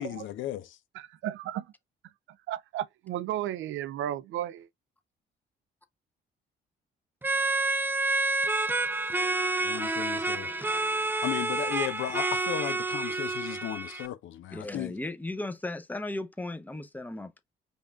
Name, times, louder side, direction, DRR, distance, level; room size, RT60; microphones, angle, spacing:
voice 1, 0.0-0.8 9.6-10.5 11.2-14.9, left 13 dB, 80° left, 0.6 m, -35 dB
voice 2, 1.0-1.7 2.5-4.7, right 12 dB, 75° right, 0.4 m, -33 dB
sound 1, 7.2-14.1, right 2 dB, 10° right, 0.4 m, -29 dB
voice 3, 9.9-10.8 14.5-17.4, left 2 dB, 10° left, 0.7 m, -37 dB
5.3 x 2.5 x 3.5 m
cardioid pair, 90°, 20 cm